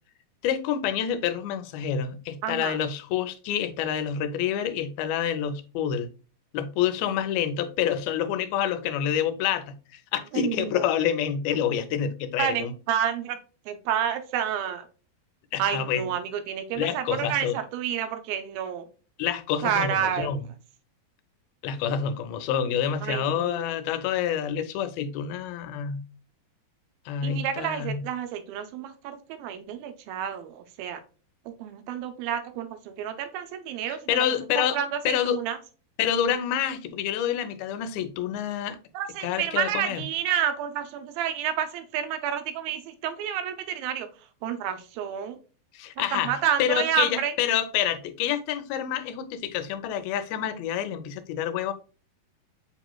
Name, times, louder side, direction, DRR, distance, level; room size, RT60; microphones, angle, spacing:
voice 1, 0.4-6.1 6.5-12.7 15.5-16.1 16.7-17.6 19.2-20.4 21.6-26.1 27.1-28.0 33.9-34.8 35.1-35.4 36.0-38.8 39.2-40.0 45.7-46.3 46.6-51.7, left 9 dB, 85° left, 2.5 m, -28 dB
voice 2, 2.4-2.8 10.3-10.9 12.4-13.4 13.7-14.9 15.6-18.9 19.6-20.4 23.0-23.7 27.2-31.0 31.5-34.2 34.6-35.6 38.9-44.1 44.4-45.4 46.0-47.3, right 9 dB, 85° right, 2.5 m, -29 dB
7.2 x 3.0 x 2.2 m
omnidirectional pair, 4.2 m